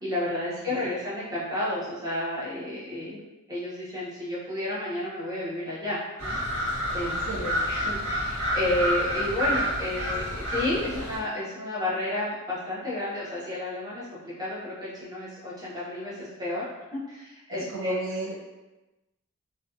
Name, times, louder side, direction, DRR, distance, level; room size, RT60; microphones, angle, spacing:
voice 1, 0.0-3.2 3.5-6.3 6.9-7.1 7.4-16.6 16.9-17.9, left 1 dB, 15° right, -9 dB, 0.7 m, -31 dB
sound 1, 6.2-11.2, equal, 80° right, 1.1 m, -29 dB
voice 2, 6.9-7.7 17.5-18.5, right 3 dB, 60° right, -4 dB, 0.5 m, -36 dB
2.5 x 2.2 x 2.5 m, 1.1 s
head